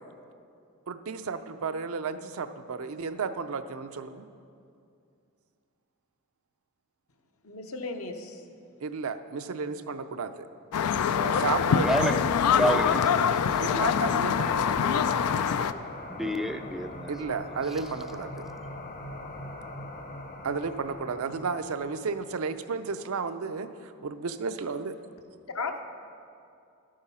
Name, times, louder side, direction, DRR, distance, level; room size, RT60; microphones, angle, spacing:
voice 1, 0.9-4.3 8.8-10.3 11.2-12.2 13.6-14.9 17.1-18.4 20.4-25.0, right 5 dB, 65° right, 9 dB, 0.5 m, -33 dB
voice 2, 7.4-8.4 25.5-25.8, left 3 dB, 65° left, 5 dB, 0.9 m, -35 dB
sound 1, 10.7-15.7, left 7 dB, 85° left, 0.4 m, -24 dB
voice 3, 11.8-12.2 12.6-13.6 16.1-17.1, equal, ahead, 7 dB, 0.4 m, -29 dB
sound 2, 14.4-22.4, left 2 dB, 40° left, 0.8 m, -41 dB
12.0 x 8.7 x 5.5 m, 2.4 s
head